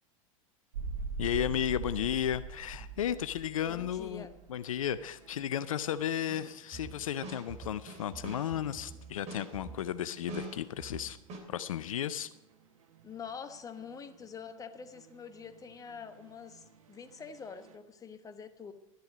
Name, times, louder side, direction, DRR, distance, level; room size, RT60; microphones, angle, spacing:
sound 1, 0.7-17.8, right 4 dB, 75° right, 1.0 m, -47 dB
voice 1, 1.2-11.2 11.5-12.3, left 10 dB, 75° left, 14 dB, 0.5 m, -34 dB
voice 2, 3.7-4.3 13.0-18.7, left 6 dB, 20° left, 9 dB, 1.1 m, -46 dB
sound 2, 6.3-11.4, right 3 dB, 40° right, 3.2 m, -45 dB
12.5 x 10.5 x 5.0 m, 0.95 s
hypercardioid pair, 90°, 18 cm